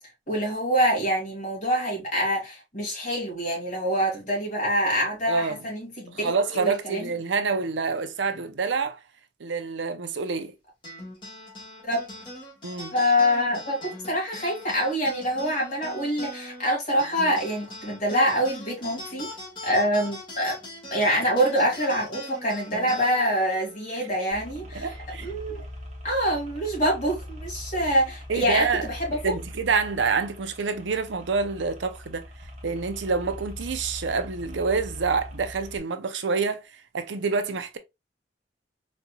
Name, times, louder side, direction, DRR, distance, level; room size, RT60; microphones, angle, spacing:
voice 1, 0.3-7.1 11.8-12.0 12.9-19.3 19.6-20.6 20.9-25.0 25.2-25.6 26.0-29.2, equal, 40° left, 2.1 m, -25 dB
voice 2, 5.3-5.6 6.1-9.0 9.4-10.5 12.6-12.9 24.0-24.1 24.7-25.4 28.3-28.8 29.2-32.3 32.6-37.8, right 4 dB, 80° right, 0.6 m, -27 dB
sound 1, 10.8-25.6, left 1 dB, 25° left, 1.7 m, -42 dB
sound 2, 24.3-35.8, left 1 dB, 40° right, 1.0 m, -41 dB
4.1 x 3.0 x 2.3 m
head